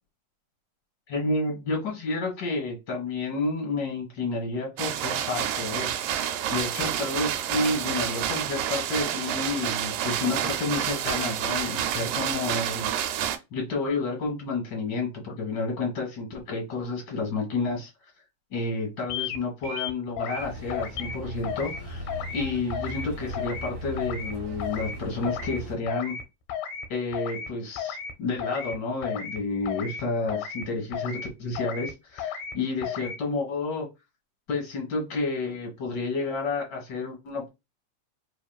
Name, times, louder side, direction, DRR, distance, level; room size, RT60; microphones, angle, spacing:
voice 1, 1.1-17.9 18.5-22.0 22.3-26.1 26.9-33.9 34.5-37.5, left 3 dB, 50° left, 0 dB, 1.4 m, -30 dB
sound 1, 4.8-13.4, right 10 dB, 80° right, 2.1 m, -29 dB
sound 2, 19.1-19.4 19.6-20.4 20.7-21.2 21.4-21.8 22.1-22.4 22.7-23.1 23.3-23.7 24.0-24.3 24.6-25.0 25.2-25.6 25.9-26.2 26.5-26.9 27.1-27.5 27.8-28.1 28.4-28.8 29.0-29.4 29.7-30.0 30.3-30.7 30.9-31.3 31.6-31.9 32.2-32.5 32.8-33.2, left 8 dB, 85° left, 2.5 m, -33 dB
sound 3, 20.4-25.8, right 1 dB, 60° right, 1.3 m, -38 dB
4.8 x 3.1 x 2.3 m, 0.24 s
omnidirectional pair, 3.9 m